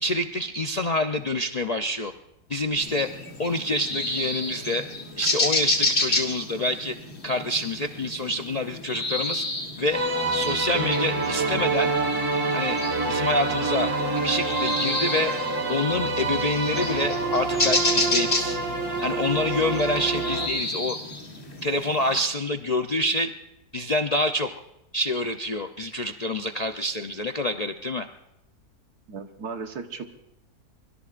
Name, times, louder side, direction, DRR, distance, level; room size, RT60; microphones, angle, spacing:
voice 1, 0.0-2.1 2.5-3.1 3.4-4.8 5.2-7.0 7.2-9.4 9.8-10.0 10.3-11.9 12.5-12.8 13.1-13.9 14.2-15.3 15.7-18.6 19.0-21.0 21.6-23.3 23.7-24.5 24.9-28.1, left 1 dB, 90° left, 6 dB, 0.3 m, -27 dB
sound 1, 2.8-22.2, left 2 dB, 40° left, 2.5 m, -31 dB
sound 2, 9.9-20.5, right 3 dB, 55° right, 2.3 m, -27 dB
voice 2, 29.1-30.1, right 5 dB, 75° right, 6 dB, 1.7 m, -35 dB
24.5 x 22.0 x 2.5 m, 0.85 s
omnidirectional pair, 1.7 m